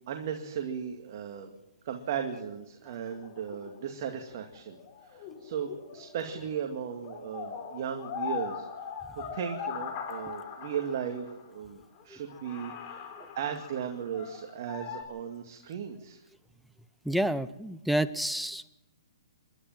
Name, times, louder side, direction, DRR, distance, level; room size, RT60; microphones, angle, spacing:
voice 1, 0.0-1.5 1.8-8.9 9.3-16.2, right 8 dB, 45° right, 3 dB, 2.2 m, -36 dB
sound 1, 3.1-6.6 6.9-11.4 12.0-12.1 12.3-15.0, left 7 dB, 35° left, 3.8 m, -40 dB
voice 2, 17.0-18.7, right 1 dB, ahead, 13 dB, 0.7 m, -30 dB
29.0 x 12.0 x 7.5 m, 0.97 s
hypercardioid pair, 145°, 2 cm